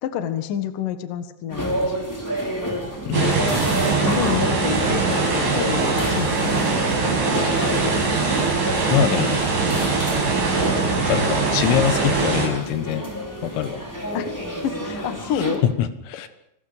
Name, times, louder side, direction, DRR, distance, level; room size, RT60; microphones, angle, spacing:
voice 1, 0.0-2.0 4.0-6.7 14.1-14.3 14.6-15.6, left 9 dB, 60° left, 8 dB, 2.4 m, -28 dB
sound 1, 1.5-15.6, equal, 5° left, 3.2 m, -29 dB
voice 2, 3.1-3.5 8.9-9.4 11.1-13.1 13.4-13.8 15.3-16.3, left 9 dB, 80° left, 10 dB, 3.9 m, -24 dB
sound 2, 3.1-12.5, right 4 dB, 65° right, 8.4 m, -22 dB
28.5 x 21.5 x 5.1 m, 0.77 s
omnidirectional pair, 5.8 m